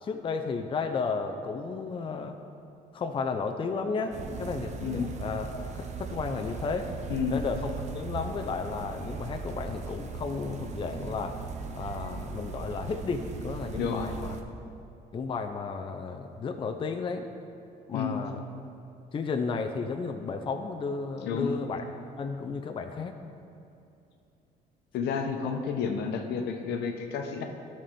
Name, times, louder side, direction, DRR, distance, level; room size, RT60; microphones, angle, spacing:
voice 1, 0.0-2.4 2.9-6.9 7.3-11.4 11.7-14.4 15.1-17.3 17.9-18.4 19.1-21.9 22.2-23.2, left 4 dB, 30° left, 5 dB, 0.5 m, -33 dB
sound 1, 4.1-14.4, right 4 dB, 45° right, 0.7 m, -38 dB
voice 2, 4.8-5.2 7.1-7.4 13.7-14.1 17.9-18.2 21.2-21.6 24.9-27.4, left 6 dB, 80° left, 4 dB, 0.9 m, -31 dB
12.5 x 4.3 x 5.3 m, 2.7 s
cardioid pair, 110°, 17 cm